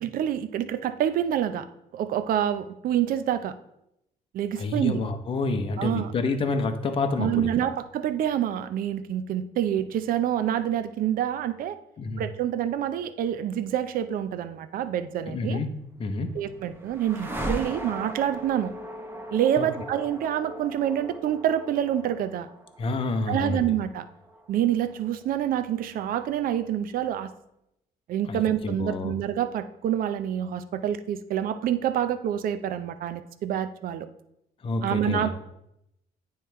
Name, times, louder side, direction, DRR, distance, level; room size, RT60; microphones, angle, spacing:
voice 1, 0.0-1.7 1.9-3.5 4.3-5.0 5.8-6.1 7.2-11.8 12.2-15.6 16.3-18.7 19.3-22.5 23.3-24.0 24.5-27.3 28.1-34.1 34.8-35.4, right 10 dB, 60° right, 11 dB, 0.5 m, -27 dB
voice 2, 4.6-7.5 12.0-12.2 15.3-15.7 16.0-16.3 19.6-19.7 22.8-23.7 28.2-29.1 34.6-35.3, left 3 dB, 30° left, 6 dB, 0.7 m, -28 dB
sound 1, 15.8-25.9, right 1 dB, 15° right, 0.9 m, -39 dB
9.2 x 3.1 x 4.5 m, 0.81 s
cardioid pair, 110°, 17 cm